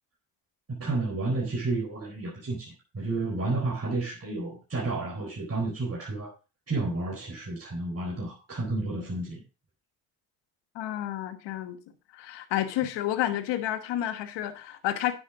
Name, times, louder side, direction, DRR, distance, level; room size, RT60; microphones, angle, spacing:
voice 1, 0.7-6.3 6.7-9.4, right 2 dB, 35° right, -2 dB, 4.1 m, -31 dB
voice 2, 10.7-11.8 12.1-15.1, left 12 dB, 80° left, 9 dB, 1.3 m, -30 dB
10.0 x 7.9 x 3.7 m, 0.31 s
hypercardioid pair, 50°, 42 cm